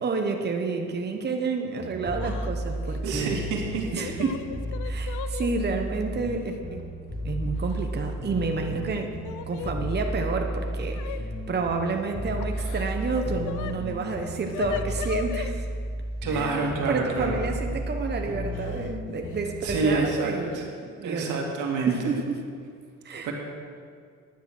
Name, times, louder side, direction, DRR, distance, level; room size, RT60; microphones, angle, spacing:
voice 1, 0.0-3.4 3.9-4.4 4.8-6.8 7.2-9.1 9.5-15.7 16.3-21.4 21.8-22.4 23.0-23.3, right 4 dB, 35° right, 3 dB, 1.1 m, -30 dB
sound 1, 1.8-19.8, equal, 30° left, 1.9 m, -33 dB
Yell / Crying sobbing, 2.2-2.5 2.8-3.0 3.7-5.5 6.5-6.6 7.6-8.1 8.4-9.7 10.9-11.2 12.4-13.7 14.0-15.5 17.2-17.3 18.5-18.9 19.2-19.4 20.5-20.6 21.0-21.4, left 11 dB, 85° left, 0.6 m, -38 dB
voice 2, 3.0-4.1 16.2-17.3 19.6-20.6 21.0-21.9 23.2-23.3, right 4 dB, 85° right, 0 dB, 2.1 m, -28 dB
10.5 x 9.3 x 6.1 m, 2.2 s
cardioid pair, 90°, 30 cm